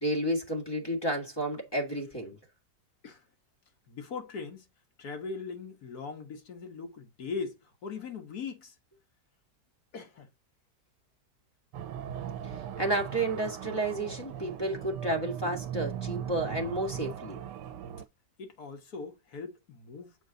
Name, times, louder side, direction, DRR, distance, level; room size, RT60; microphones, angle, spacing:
voice 1, 0.0-2.4 12.8-17.4, right 1 dB, 15° left, 1.8 m, -31 dB
voice 2, 3.9-4.7 5.0-8.8 9.9-10.3 18.4-20.2, left 5 dB, 65° left, 1.9 m, -40 dB
sound 1, 11.7-18.1, right 9 dB, 80° right, 1.2 m, -39 dB
7.1 x 4.5 x 3.9 m
omnidirectional pair, 1.8 m